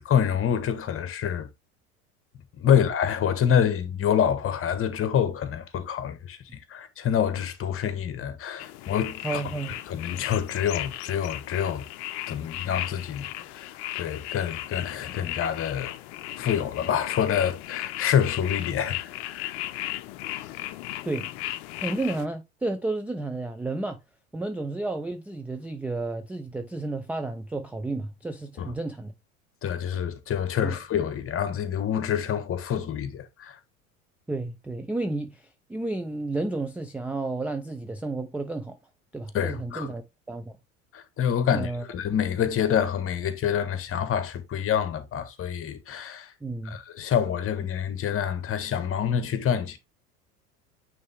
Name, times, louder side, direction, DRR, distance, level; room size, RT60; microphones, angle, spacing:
voice 1, 0.0-1.5 2.6-9.4 9.9-11.8 12.3-15.9 16.4-19.5 28.6-28.7 29.6-33.6 39.3-39.9 40.9-46.3 46.6-49.8, left 8 dB, 30° left, 1.3 m, -27 dB
sound 1, 8.6-22.3, left 15 dB, 50° left, 0.7 m, -36 dB
voice 2, 9.2-9.8 21.0-21.3 21.8-24.0 24.3-29.1 30.6-30.8 34.3-38.8 39.1-40.6 41.5-41.8 46.4-46.8, right 2 dB, 5° right, 0.3 m, -32 dB
9.2 x 3.4 x 3.4 m
figure-of-eight pair, 70°, 43 cm